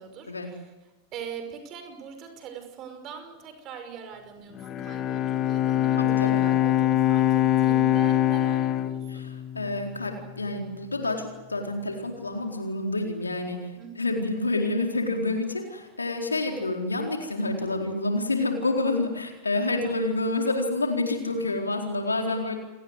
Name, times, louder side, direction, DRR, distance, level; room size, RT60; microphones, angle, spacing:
voice 1, 0.0-9.2 13.8-14.2, right 7 dB, 35° right, 7 dB, 5.6 m, -42 dB
Bowed string instrument, 4.6-10.0, left 13 dB, 30° left, 1.4 m, -23 dB
voice 2, 5.9-6.5 9.1-22.6, left 2 dB, 80° left, 3 dB, 4.3 m, -28 dB
28.5 x 19.5 x 8.1 m, 1.1 s
figure-of-eight pair, 90°, 0 cm